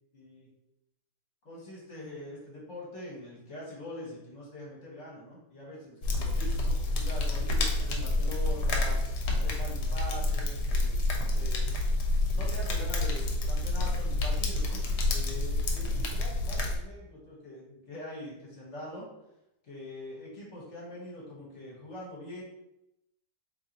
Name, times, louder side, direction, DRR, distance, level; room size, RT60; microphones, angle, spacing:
voice 1, 0.1-0.5 1.4-11.7 12.3-19.1 19.6-22.4, equal, 50° left, -5 dB, 1.2 m, -43 dB
sound 1, 6.0-16.8, left 2 dB, 75° left, 1.2 m, -28 dB
2.9 x 2.8 x 3.8 m, 0.87 s
omnidirectional pair, 1.8 m